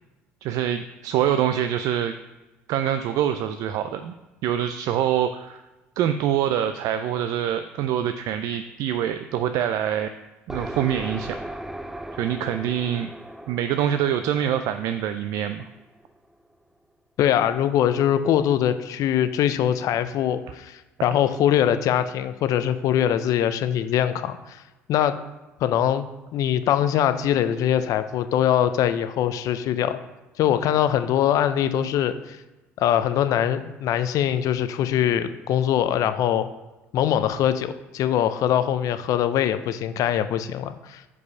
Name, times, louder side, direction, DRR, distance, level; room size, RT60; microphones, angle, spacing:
voice 1, 0.4-2.1 2.7-4.1 4.4-5.6 6.0-10.1 10.5-11.4 12.2-13.1 13.5-15.7, right 10 dB, 70° right, 9 dB, 0.3 m, -25 dB
sound 1, 10.5-16.1, right 1 dB, 5° right, 0.5 m, -38 dB
voice 2, 17.2-24.6 24.9-25.2 25.6-26.0 26.3-30.0 30.4-32.4 32.8-36.5 36.9-41.0, left 10 dB, 65° left, 11 dB, 0.5 m, -22 dB
4.8 x 4.8 x 5.4 m, 1.1 s
hypercardioid pair, 60°, 6 cm